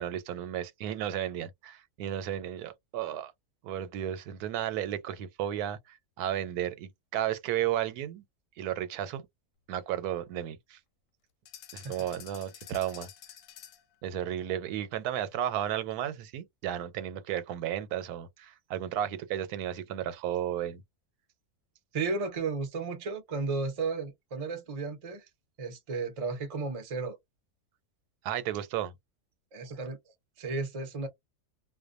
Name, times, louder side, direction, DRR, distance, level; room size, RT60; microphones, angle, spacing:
voice 1, 0.0-3.3 3.6-8.2 8.6-9.2 9.7-10.8 11.7-13.1 14.0-20.8 28.2-28.9, right 11 dB, 90° right, 1.1 m, -33 dB
sound 1, 11.5-13.9, left 10 dB, 70° left, 0.8 m, -49 dB
voice 2, 21.9-25.3 25.6-27.2 29.5-30.0 30.4-31.1, right 4 dB, 45° right, 0.4 m, -33 dB
2.4 x 2.1 x 2.4 m
omnidirectional pair, 1.6 m